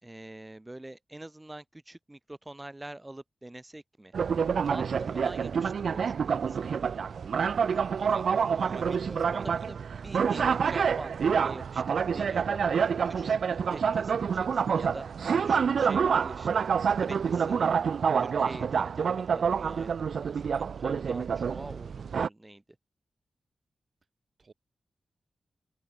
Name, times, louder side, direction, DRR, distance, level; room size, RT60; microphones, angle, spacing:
voice 1, 0.0-4.1 4.6-6.9 8.8-13.4 13.6-15.1 15.4-16.7 17.0-17.6 18.2-22.6, right 1 dB, 15° right, 3.5 m, -45 dB
sound 1, 4.1-22.3, right 6 dB, 75° right, 1.0 m, -27 dB
voice 2, 4.9-5.2 8.0-9.5 24.4-24.5, right 4 dB, 40° right, 1.6 m, -44 dB
wide cardioid pair, 125°, 0 cm